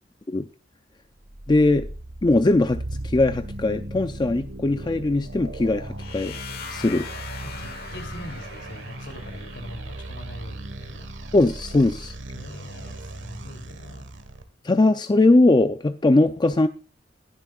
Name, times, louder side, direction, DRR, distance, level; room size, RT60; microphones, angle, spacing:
sound 1, 1.2-14.4, right 1 dB, 75° right, 1.4 m, -37 dB
voice 1, 1.5-1.9 2.2-6.4 6.7-7.1 11.3-12.1 14.6-16.7, left 2 dB, 25° left, 9 dB, 0.4 m, -20 dB
sound 2, 6.0-9.8, left 7 dB, 55° left, 1.2 m, -40 dB
voice 2, 6.7-11.1 12.3-14.1, equal, 70° left, 5 dB, 3.1 m, -42 dB
20.5 x 7.3 x 2.4 m, 0.34 s
head